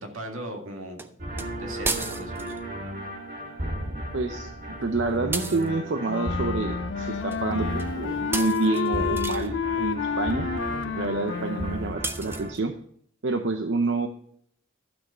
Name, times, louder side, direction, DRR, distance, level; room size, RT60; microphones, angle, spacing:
voice 1, 0.0-1.1 1.4-2.6, right 1 dB, 90° right, 3 dB, 2.1 m, -38 dB
sound 1, 1.0-1.1 1.4-1.5 1.8-2.6 5.3-5.7 7.3-7.4 7.8-7.9 8.3-9.5 12.0-12.6, right 3 dB, 10° right, 0.4 m, -33 dB
sound 2, 1.2-12.5, right 1 dB, 45° right, 1.7 m, -35 dB
voice 2, 4.1-4.5 4.8-10.5 10.9-12.7 13.2-14.1, right 3 dB, 60° right, 6 dB, 0.7 m, -28 dB
Wind instrument woodwind instrument, 6.1-12.0, left 6 dB, 60° left, 0.3 m, -30 dB
12.0 x 6.3 x 5.5 m, 0.64 s
head